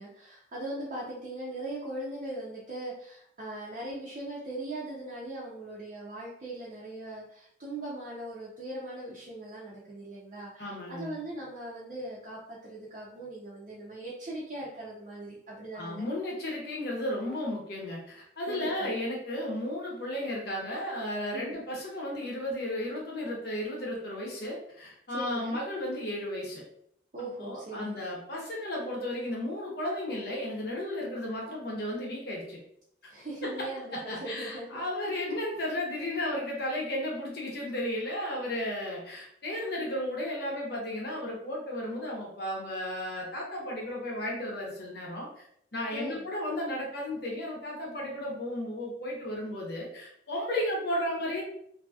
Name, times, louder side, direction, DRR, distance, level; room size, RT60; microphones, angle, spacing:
voice 1, 0.0-16.1 18.5-18.9 21.3-21.6 25.1-25.6 27.1-28.0 33.1-34.8 45.9-46.2, right 1 dB, 45° right, -8 dB, 0.6 m, -40 dB
voice 2, 10.6-11.2 15.7-26.6 27.4-32.6 33.4-45.5 45.7-51.4, left 1 dB, 55° left, -3 dB, 0.9 m, -34 dB
2.7 x 2.7 x 2.3 m, 0.70 s
head